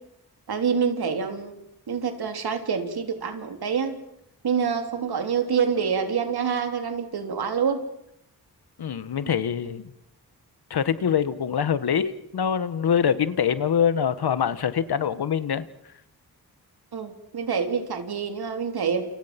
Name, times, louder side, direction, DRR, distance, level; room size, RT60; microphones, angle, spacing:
voice 1, 0.5-1.6 1.9-4.0 4.4-7.8 16.9-19.1, right 6 dB, 85° right, 6 dB, 3.3 m, -26 dB
voice 2, 8.8-9.9 10.7-15.6, left 8 dB, 85° left, 13 dB, 1.5 m, -24 dB
29.5 x 29.0 x 6.0 m, 0.78 s
cardioid pair, 65°, 37 cm